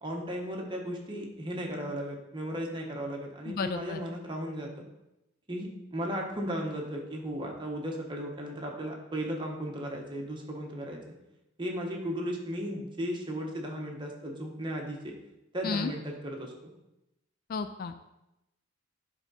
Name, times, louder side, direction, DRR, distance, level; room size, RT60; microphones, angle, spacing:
voice 1, 0.0-4.8 5.5-11.1 11.6-15.1 15.5-16.7, equal, 25° right, 0 dB, 1.1 m, -36 dB
voice 2, 3.5-4.0 15.6-15.9 17.5-18.0, left 4 dB, 45° left, 10 dB, 0.3 m, -32 dB
10.5 x 3.6 x 4.2 m, 0.91 s
head